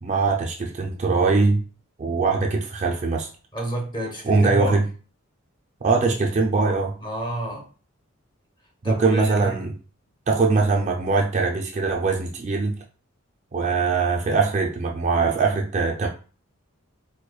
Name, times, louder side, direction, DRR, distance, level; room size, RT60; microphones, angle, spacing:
voice 1, 0.0-1.6 2.0-3.3 4.2-4.9 5.8-6.9 8.8-9.7 10.3-12.8 13.5-16.1, right 4 dB, 35° right, 1 dB, 0.4 m, -22 dB
voice 2, 3.5-4.8 7.0-7.7 8.8-9.5, right 1 dB, 20° left, 0 dB, 1.0 m, -29 dB
4.6 x 2.2 x 2.3 m, 0.36 s
head